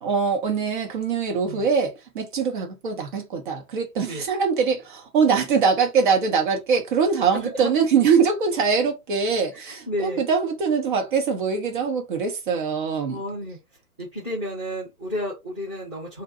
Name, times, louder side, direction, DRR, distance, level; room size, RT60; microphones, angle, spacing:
voice 1, 0.0-13.2, right 5 dB, 35° right, 0.9 m, -23 dB
voice 2, 7.3-7.7 9.5-10.3 13.1-13.6 14.0-16.2, equal, 5° right, 0.4 m, -32 dB
2.7 x 2.2 x 4.1 m
figure-of-eight pair, 120°, 45 cm